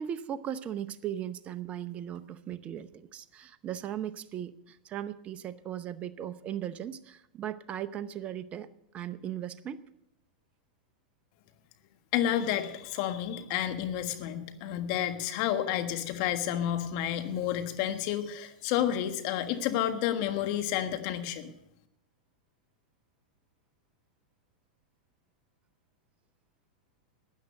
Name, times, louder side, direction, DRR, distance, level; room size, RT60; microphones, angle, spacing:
voice 1, 0.0-8.7 8.9-9.8, right 10 dB, 30° right, 13 dB, 0.7 m, -37 dB
voice 2, 12.1-21.5, left 11 dB, 50° left, 8 dB, 1.4 m, -30 dB
13.0 x 8.8 x 6.5 m, 0.83 s
hypercardioid pair, 110°, 5 cm